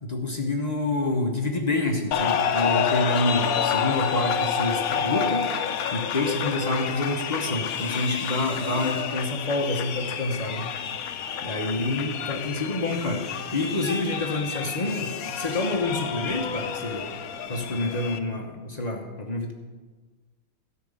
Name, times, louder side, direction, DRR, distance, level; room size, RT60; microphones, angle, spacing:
voice 1, 0.0-10.7 11.4-17.1 17.5-19.5, left 2 dB, 45° left, 1 dB, 0.5 m, -28 dB
sound 1, 2.1-18.2, left 7 dB, 85° left, 0.8 m, -29 dB
12.5 x 5.9 x 8.4 m, 1.3 s
omnidirectional pair, 2.4 m